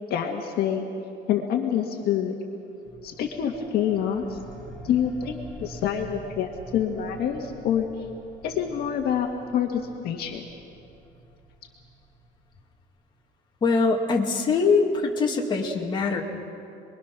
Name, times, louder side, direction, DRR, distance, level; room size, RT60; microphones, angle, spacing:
voice 1, 0.1-0.9 1.3-2.4 3.0-4.4 4.8-7.9 8.4-9.3 9.5-10.4, left 9 dB, 50° left, 2 dB, 1.8 m, -26 dB
sound 1, 2.8-13.0, right 1 dB, ahead, 4.4 m, -46 dB
voice 2, 13.6-16.2, left 4 dB, 25° left, -1 dB, 2.3 m, -23 dB
28.0 x 22.0 x 6.2 m, 2.6 s
cardioid pair, 165°, 20 cm